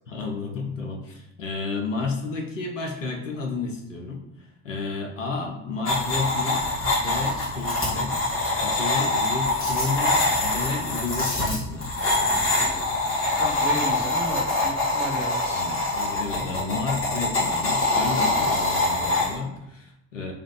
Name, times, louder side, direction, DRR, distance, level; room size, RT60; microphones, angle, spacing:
voice 1, 0.1-11.9 15.1-15.2 15.5-20.3, left 4 dB, 90° left, 1 dB, 0.5 m, -32 dB
sound 1, 5.9-19.3, left 2 dB, 35° left, 1.4 m, -24 dB
voice 2, 13.4-15.8, equal, 5° right, -3 dB, 0.5 m, -33 dB
3.3 x 2.6 x 3.0 m, 0.86 s
figure-of-eight pair, 55°, 37 cm